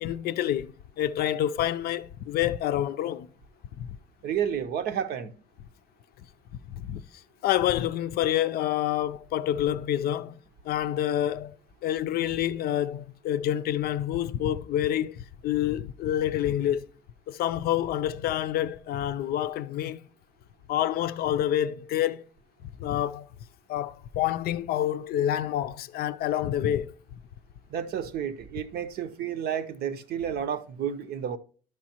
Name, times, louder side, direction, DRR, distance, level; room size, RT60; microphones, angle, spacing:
voice 1, 0.0-3.3 3.8-3.9 6.7-7.0 7.4-11.6 11.8-16.9 17.3-20.0 20.7-22.2 22.8-23.3 23.7-26.9, left 11 dB, 65° left, 0.4 m, -28 dB
voice 2, 4.2-5.3 27.7-31.4, right 8 dB, 65° right, 0.7 m, -31 dB
11.5 x 6.2 x 2.9 m
cardioid pair, 110°, 17 cm